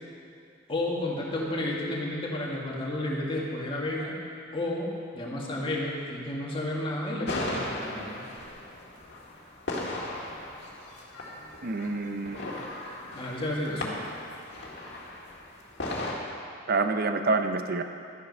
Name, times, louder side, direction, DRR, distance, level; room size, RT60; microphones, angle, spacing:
voice 1, 0.7-4.2 4.5-4.9 5.1-8.2 13.1-14.0, left 1 dB, 25° left, -4 dB, 2.0 m, -31 dB
sound 1, 7.3-16.1, left 1 dB, 60° left, 1.8 m, -37 dB
voice 2, 11.6-12.4 16.7-17.8, right 3 dB, 50° right, 7 dB, 0.7 m, -27 dB
12.5 x 9.3 x 5.5 m, 2.4 s
head